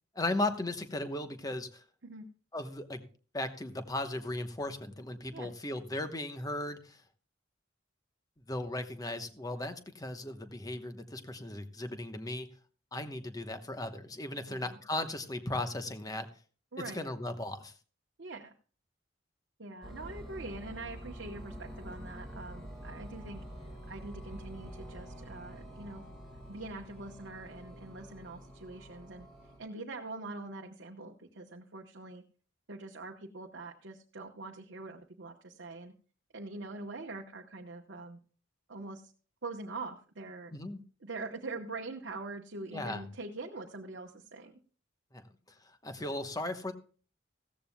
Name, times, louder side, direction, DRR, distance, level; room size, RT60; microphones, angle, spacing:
voice 1, 0.1-1.8 2.5-3.1 3.3-7.0 8.5-12.5 12.9-16.3 16.8-17.7 40.5-40.8 42.7-43.1 45.1-45.6 45.8-46.7, left 2 dB, 20° left, 8 dB, 1.0 m, -37 dB
voice 2, 14.5-14.8 16.7-17.1 18.2-18.5 19.6-23.4 23.8-26.0 26.5-32.2 32.7-35.9 36.3-38.2 38.7-39.1 39.4-40.5 41.0-44.6, right 3 dB, 65° right, 1 dB, 1.0 m, -44 dB
sound 1, 19.8-29.6, equal, 5° left, 4.3 m, -47 dB
16.0 x 14.0 x 2.2 m, 0.40 s
head